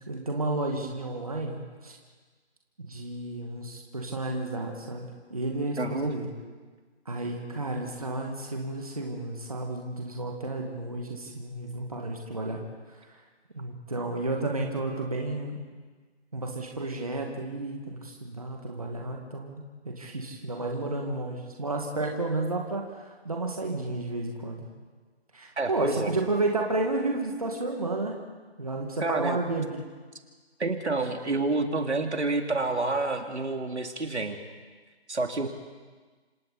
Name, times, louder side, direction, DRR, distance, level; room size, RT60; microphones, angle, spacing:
voice 1, 0.0-2.0 2.8-6.3 7.1-12.6 13.5-15.6 16.3-24.6 25.3-28.2 28.6-29.8, right 2 dB, 35° right, 1 dB, 2.0 m, -32 dB
voice 2, 5.8-6.1 25.6-26.1 29.0-29.4 30.6-34.4 35.1-35.5, right 3 dB, 80° right, 4 dB, 2.9 m, -28 dB
27.5 x 27.0 x 4.2 m, 1.4 s
figure-of-eight pair, 180°, 33 cm